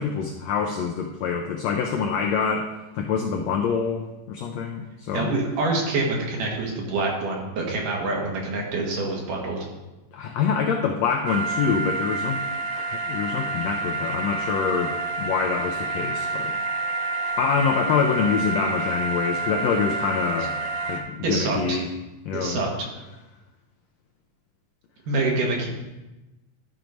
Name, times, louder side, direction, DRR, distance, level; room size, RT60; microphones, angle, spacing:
voice 1, 0.0-2.7 2.9-5.3 10.1-12.4 12.7-16.6 17.4-20.6 20.9-21.9 22.3-22.6, left 6 dB, 80° left, 2 dB, 1.5 m, -26 dB
voice 2, 5.1-9.7 21.2-21.8 22.3-22.9 25.1-25.7, right 3 dB, 75° right, -1 dB, 3.2 m, -26 dB
sound 1, 11.2-21.0, right 3 dB, 55° right, 1.4 m, -28 dB
12.5 x 4.6 x 5.2 m, 1.1 s
omnidirectional pair, 3.8 m